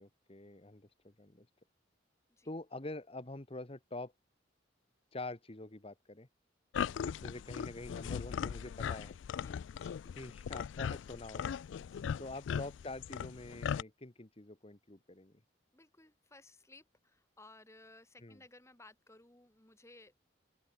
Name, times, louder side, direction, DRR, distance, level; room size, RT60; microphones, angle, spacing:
voice 1, 0.0-1.5 2.4-4.1 5.1-6.3 7.0-9.2 10.1-11.6 12.2-15.4 18.2-18.4, left 2 dB, 30° left, 1.6 m, -46 dB
sound 1, 6.7-13.8, left 7 dB, 75° left, 0.3 m, -39 dB
voice 2, 9.4-10.1 11.9-12.2 15.7-20.2, left 2 dB, 15° left, 2.6 m, -59 dB
open air
head